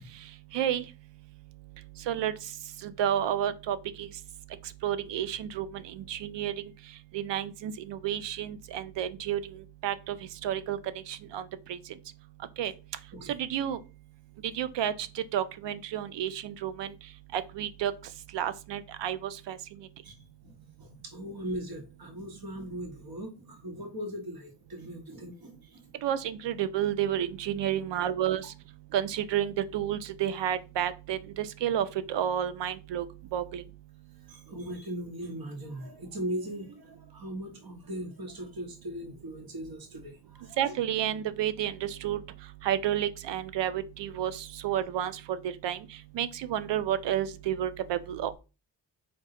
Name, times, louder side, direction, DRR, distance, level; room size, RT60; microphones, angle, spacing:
voice 1, 0.5-0.8 2.1-2.3 2.8-4.1 4.8-6.5 7.1-9.4 9.8-10.2 10.4-10.8 11.1-11.4 11.7-11.8 12.6-12.7 13.3-13.8 14.5-14.9 15.3-16.9 17.3-17.9 18.3-19.6 26.0-28.5 28.9-33.0 33.3-33.6 40.6-42.2 42.6-45.4 45.6-45.8 46.1-48.3, right 10 dB, 70° right, 0.5 m, -30 dB
voice 2, 20.0-25.9 34.3-40.7, right 1 dB, 55° right, 1.1 m, -39 dB
3.8 x 2.3 x 4.0 m
cardioid pair, 75°, 45 cm